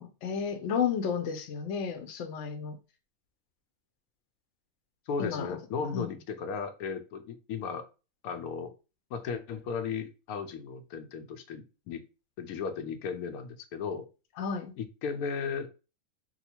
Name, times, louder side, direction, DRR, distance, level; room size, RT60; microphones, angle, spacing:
voice 1, 0.0-2.8 5.2-5.5 5.9-6.1 14.4-14.7, left 7 dB, 65° left, 0.9 m, -32 dB
voice 2, 5.1-7.8 8.2-8.7 9.1-12.0 12.4-14.1 14.8-15.7, left 6 dB, 90° left, 1.0 m, -35 dB
2.8 x 2.3 x 4.2 m
omnidirectional pair, 1.5 m